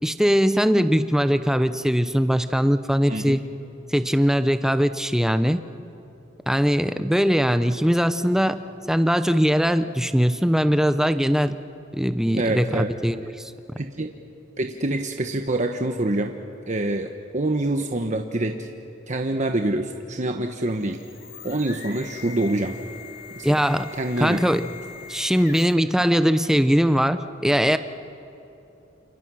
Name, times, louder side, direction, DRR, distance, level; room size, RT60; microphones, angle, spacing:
voice 1, 0.0-3.4 3.9-5.6 6.5-8.6 8.9-11.6 11.9-13.3 23.4-23.9 24.2-24.7 25.1-27.8, equal, 5° right, 10 dB, 0.8 m, -21 dB
voice 2, 3.1-3.4 12.3-12.9 13.8-14.2 14.6-16.3 16.7-18.7 19.1-21.0 21.4-22.8 23.3-23.6 23.9-24.4, right 1 dB, 40° right, 4 dB, 1.2 m, -26 dB
sound 1, 20.6-25.9, left 6 dB, 50° left, 2.5 m, -42 dB
29.0 x 28.5 x 6.3 m, 2.9 s
head